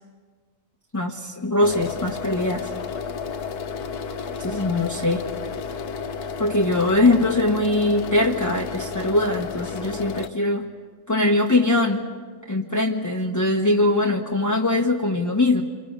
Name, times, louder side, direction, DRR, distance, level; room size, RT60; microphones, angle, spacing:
voice 1, 0.9-2.7 4.4-5.2 6.4-10.7 11.1-12.1 12.5-15.6, left 2 dB, 15° left, 0 dB, 0.8 m, -22 dB
sound 1, 1.6-10.3, left 5 dB, 55° left, 1.3 m, -32 dB
29.0 x 24.0 x 6.6 m, 1.5 s
omnidirectional pair, 2.1 m